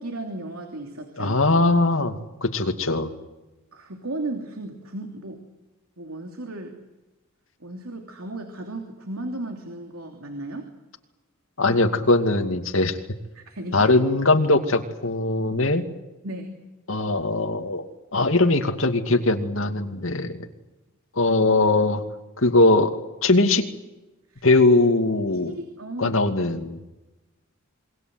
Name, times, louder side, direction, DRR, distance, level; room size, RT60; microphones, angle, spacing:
voice 1, 0.0-1.4 3.7-5.4 6.0-6.8 7.6-10.7 11.7-11.8 13.3-13.9 16.2-16.6 24.3-24.5 25.5-26.2, right 2 dB, 80° right, 4 dB, 3.1 m, -35 dB
voice 2, 1.2-3.1 11.6-13.0 13.7-15.8 16.9-20.4 21.2-22.0 22.4-22.9 23.2-23.6 24.4-25.5 26.0-26.8, left 2 dB, 65° left, 6 dB, 2.5 m, -20 dB
27.0 x 23.0 x 8.0 m, 1.1 s
head